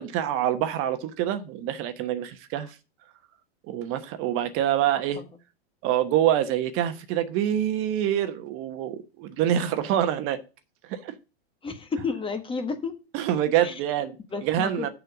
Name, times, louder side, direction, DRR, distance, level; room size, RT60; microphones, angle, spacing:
voice 1, 0.0-2.7 3.7-5.2 5.8-10.4 10.9-11.1 13.1-14.2 14.4-14.9, right 11 dB, 45° right, 1.1 m, -26 dB
voice 2, 11.6-12.9 13.6-13.7 14.3-14.9, left 4 dB, 15° left, 1.4 m, -31 dB
6.8 x 5.6 x 6.0 m
hypercardioid pair, 110°, 31 cm